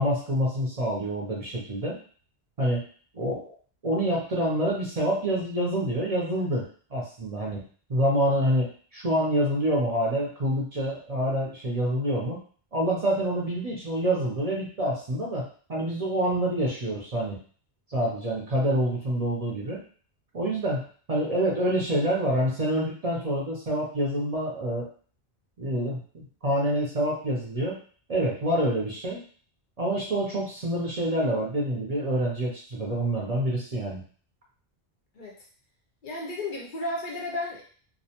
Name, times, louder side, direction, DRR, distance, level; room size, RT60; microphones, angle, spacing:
voice 1, 0.0-2.0 2.6-2.8 3.1-3.5 3.8-12.4 12.7-17.4 17.9-19.8 20.3-24.9 25.6-27.8 28.1-29.2 29.8-34.0, right 1 dB, 45° right, -4 dB, 0.6 m, -27 dB
voice 2, 36.0-37.6, left 2 dB, 60° left, -1 dB, 0.6 m, -33 dB
2.4 x 2.1 x 2.8 m, 0.43 s
omnidirectional pair, 1.1 m